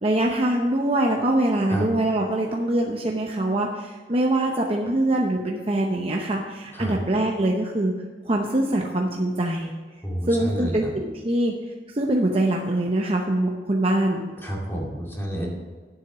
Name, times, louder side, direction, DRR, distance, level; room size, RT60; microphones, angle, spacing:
voice 1, 0.0-7.9 8.2-9.7 10.3-11.5 11.9-14.2, right 1 dB, 30° right, 0 dB, 0.8 m, -23 dB
voice 2, 10.0-10.9 14.4-15.5, equal, 15° left, -2 dB, 2.3 m, -29 dB
9.3 x 7.8 x 6.0 m, 1.5 s
head